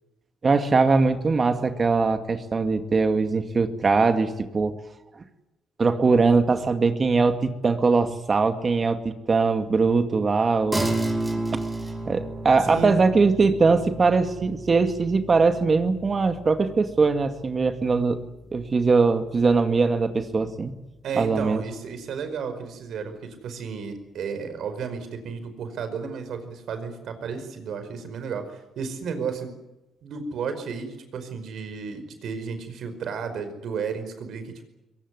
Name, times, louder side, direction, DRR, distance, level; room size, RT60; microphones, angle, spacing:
voice 1, 0.4-4.7 5.8-10.9 11.5-11.6 12.1-18.2 18.5-20.7 21.2-21.6, right 4 dB, 35° right, 8 dB, 2.2 m, -21 dB
sound 1, 10.7-20.4, right 2 dB, 10° right, 5.4 m, -33 dB
voice 2, 21.0-29.5 30.0-34.6, right 5 dB, 70° right, 9 dB, 5.1 m, -33 dB
22.5 x 19.0 x 9.7 m, 0.98 s
cardioid pair, 90°, 0 cm